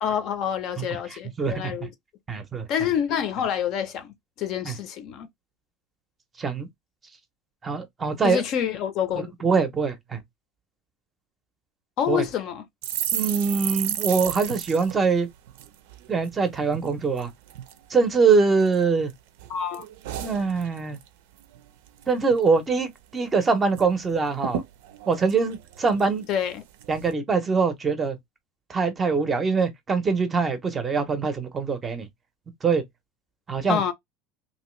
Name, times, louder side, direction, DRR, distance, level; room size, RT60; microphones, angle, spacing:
voice 1, 0.0-1.9 2.7-5.3 8.2-9.3 12.0-12.6 19.5-19.9 26.3-26.6 33.7-33.9, left 9 dB, 40° left, 0.6 m, -27 dB
voice 2, 1.1-1.8 2.3-2.7 4.7-4.8 6.4-6.7 7.6-8.4 9.2-10.2 12.1-12.2 13.1-15.3 16.1-17.3 17.9-19.1 20.2-21.0 22.1-24.6 25.1-26.2 26.9-28.2 28.7-32.1 32.6-32.8 33.5-33.8, right 4 dB, 15° right, 0.6 m, -23 dB
sound 1, 12.8-16.4 16.7-16.9 17.2-17.8 18.3-19.1 19.4-21.1 21.4-21.6 21.9-22.4 22.8-22.9 23.2-23.9 24.1-24.2 24.4-26.3 26.8-27.1, right 11 dB, 75° right, 0.5 m, -33 dB
3.0 x 2.7 x 3.1 m
cardioid pair, 165°, 0 cm